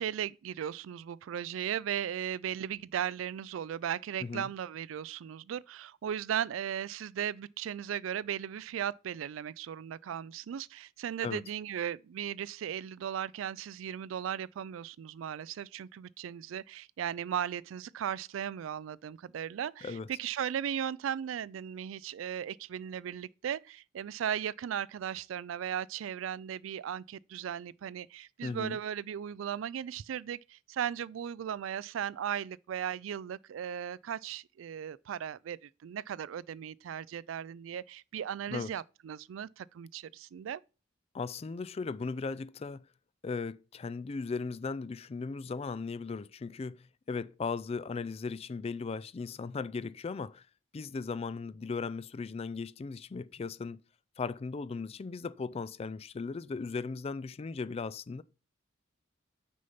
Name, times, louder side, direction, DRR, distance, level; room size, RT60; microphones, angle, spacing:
voice 1, 0.0-40.6, right 9 dB, 80° right, 0.3 m, -37 dB
voice 2, 28.4-28.8 38.5-38.7 41.1-42.9 43.2-50.5 50.7-53.8 54.2-58.2, left 4 dB, 30° left, 0.3 m, -37 dB
6.4 x 5.4 x 5.7 m
head